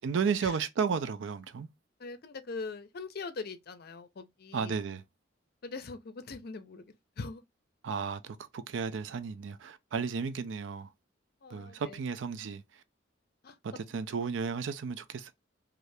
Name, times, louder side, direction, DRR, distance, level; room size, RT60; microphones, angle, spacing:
voice 1, 0.0-1.7 4.5-5.0 7.8-10.9 11.5-12.8 13.6-15.3, right 6 dB, 80° right, 0.4 m, -33 dB
voice 2, 2.0-4.8 5.6-7.4 11.4-12.0 13.4-13.6, left 4 dB, 55° left, 0.5 m, -42 dB
2.7 x 2.4 x 3.2 m
head